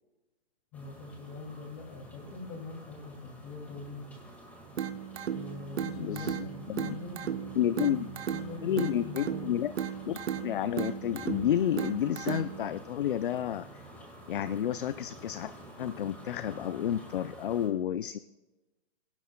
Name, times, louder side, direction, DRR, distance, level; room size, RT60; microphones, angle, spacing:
voice 1, 0.7-4.2 5.3-9.5, left 3 dB, 25° left, 2 dB, 2.6 m, -43 dB
sound 1, 0.7-17.7, equal, 5° left, 1.8 m, -50 dB
sound 2, 4.8-12.8, right 9 dB, 70° right, 1.2 m, -36 dB
voice 2, 6.0-6.4 6.7-7.0 7.6-8.1 8.6-9.7 10.1-13.8 14.3-15.5 15.8-18.2, left 10 dB, 50° left, 14 dB, 0.5 m, -30 dB
22.5 x 11.5 x 2.2 m, 1.1 s
hypercardioid pair, 150°, 35 cm